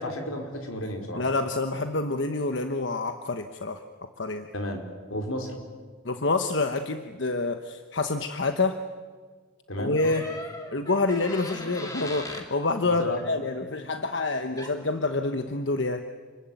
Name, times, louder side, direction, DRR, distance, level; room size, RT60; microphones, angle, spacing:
voice 1, 0.0-1.2 4.5-4.8 5.1-5.5 9.7-10.0 12.8-13.2, equal, 85° left, 3 dB, 4.8 m, -32 dB
voice 2, 1.1-3.8 4.2-4.5 6.0-8.8 9.8-10.2 10.7-16.0, left 3 dB, 60° left, 7 dB, 1.1 m, -27 dB
sound 1, 9.9-12.5 14.6-14.8, left 1 dB, 15° left, 2.8 m, -39 dB
28.5 x 21.5 x 9.2 m, 1.5 s
head